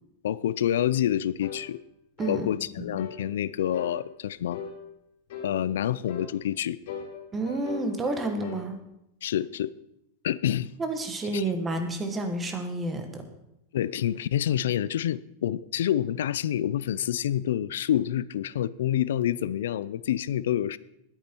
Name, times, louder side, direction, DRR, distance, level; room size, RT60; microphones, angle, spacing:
voice 1, 0.2-1.8 2.3-4.6 5.4-6.8 9.2-9.7 10.2-10.7 11.3-11.4 13.7-20.8, left 11 dB, 90° left, 18 dB, 0.5 m, -27 dB
sound 1, 1.4-1.7 2.2-2.4 3.0-3.2 3.7-4.0 4.5-4.8 5.3-5.6 6.1-6.3 6.9-8.7, left 6 dB, 55° left, 2.4 m, -38 dB
voice 2, 2.2-3.0 7.3-8.8 10.8-13.3, right 2 dB, 10° right, 6 dB, 1.3 m, -30 dB
19.5 x 8.9 x 4.5 m, 0.83 s
supercardioid pair, 175°, 0 cm